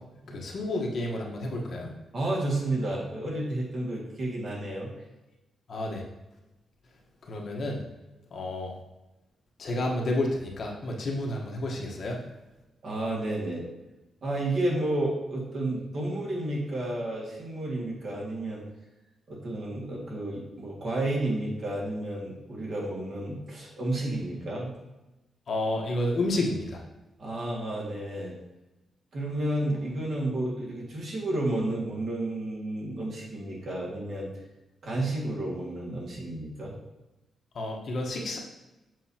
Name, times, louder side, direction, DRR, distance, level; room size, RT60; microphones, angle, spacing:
voice 1, 0.3-1.9 5.7-6.0 7.3-7.8 8.3-8.7 9.6-12.2 25.5-26.8 37.5-38.4, left 1 dB, 50° left, 0 dB, 1.1 m, -30 dB
voice 2, 2.1-4.9 12.8-13.7 14.2-18.6 19.3-24.7 27.2-28.4 29.1-34.3 34.8-36.8, right 1 dB, 50° right, -3 dB, 1.9 m, -31 dB
7.5 x 5.5 x 2.8 m, 1.0 s
wide cardioid pair, 140°, 0 cm